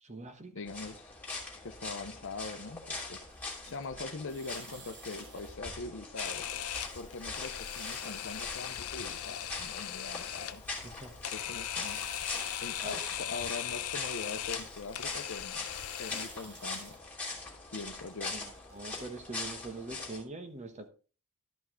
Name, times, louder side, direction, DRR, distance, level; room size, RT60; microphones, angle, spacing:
voice 1, 0.0-0.5 10.8-11.1 12.8-13.1 18.3-20.9, right 2 dB, 35° right, 1.2 m, -43 dB
voice 2, 0.5-1.1 1.6-3.2 3.7-6.5 6.9-10.6 11.3-12.0 12.6-15.6 16.0-17.0 17.7-18.4, left 3 dB, 60° left, 0.9 m, -42 dB
sound 1, 0.7-20.2, left 3 dB, 10° left, 2.9 m, -42 dB
sound 2, 3.3-3.8 4.3-5.5 6.3-7.3 7.5-8.9 9.6-11.1 11.8-13.2 13.8-15.3 15.7-17.0 17.6-19.0, right 5 dB, 55° right, 1.8 m, -55 dB
Camera, 6.2-16.2, left 11 dB, 85° left, 0.7 m, -39 dB
12.5 x 5.7 x 3.8 m
head